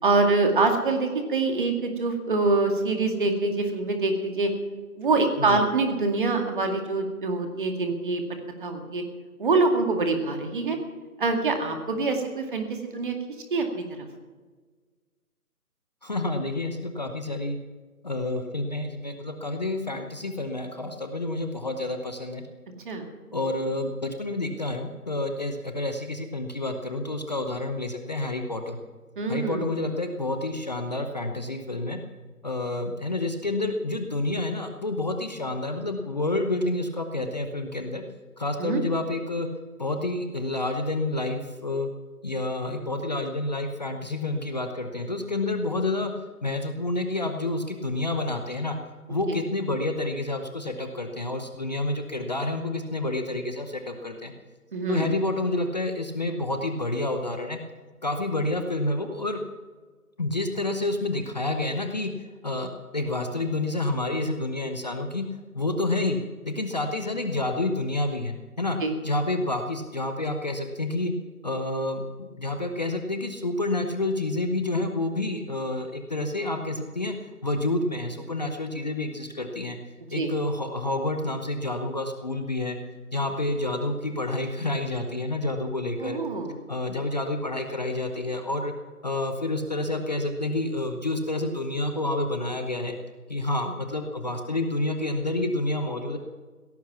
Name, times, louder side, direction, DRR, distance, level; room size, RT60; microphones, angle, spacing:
voice 1, 0.0-4.5 5.0-8.2 8.6-9.0 9.4-10.8 11.2-13.2 13.5-14.1 22.8-23.1 29.2-29.7 38.6-38.8 49.3-49.4 54.7-55.1 68.8-68.9 80.1-80.3 86.0-86.6, right 3 dB, 35° right, 4 dB, 2.2 m, -25 dB
voice 2, 16.0-17.6 18.0-22.4 23.3-28.8 29.3-32.0 32.4-38.0 38.4-39.5 39.8-41.9 42.2-46.1 46.4-48.8 49.1-54.3 54.9-57.6 58.0-59.4 60.2-62.1 62.4-65.2 65.5-66.2 66.5-68.8 69.0-71.1 71.4-77.2 77.4-79.8 80.1-82.8 83.1-86.2 86.7-88.7 89.0-93.0 93.3-96.2, left 2 dB, 30° left, 5 dB, 0.9 m, -29 dB
17.0 x 14.0 x 5.8 m, 1.4 s
figure-of-eight pair, 160°, 45 cm